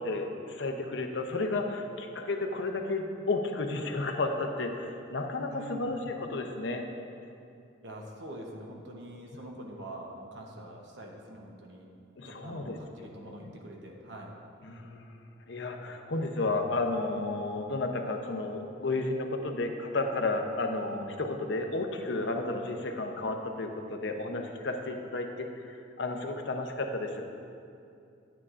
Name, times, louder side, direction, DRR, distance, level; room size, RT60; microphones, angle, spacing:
voice 1, 0.0-6.8 12.2-13.5 14.6-15.2 15.5-25.5 26.0-27.3, left 2 dB, 65° left, 3 dB, 0.6 m, -32 dB
voice 2, 5.5-6.0 7.8-11.9 12.3-14.3, right 1 dB, 60° right, 0 dB, 0.9 m, -44 dB
9.5 x 8.9 x 2.5 m, 2.6 s
head